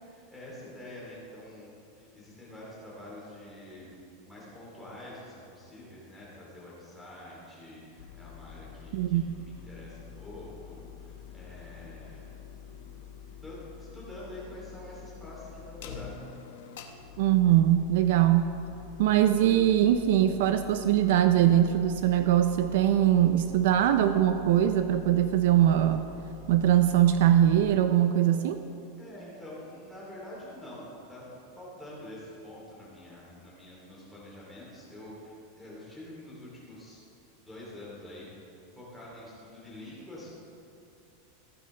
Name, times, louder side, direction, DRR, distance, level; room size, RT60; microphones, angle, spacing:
voice 1, 0.0-3.9 4.2-12.3 13.4-16.2 29.0-31.3 31.5-37.0 37.5-40.3, left 1 dB, ahead, -8 dB, 2.9 m, -46 dB
sound 1, 8.0-27.8, left 7 dB, 70° left, 1.0 m, -47 dB
voice 2, 17.2-18.6 19.0-26.0 26.5-28.6, right 11 dB, 60° right, 9 dB, 0.4 m, -22 dB
15.0 x 9.2 x 3.3 m, 2.8 s
supercardioid pair, 170°, 0 cm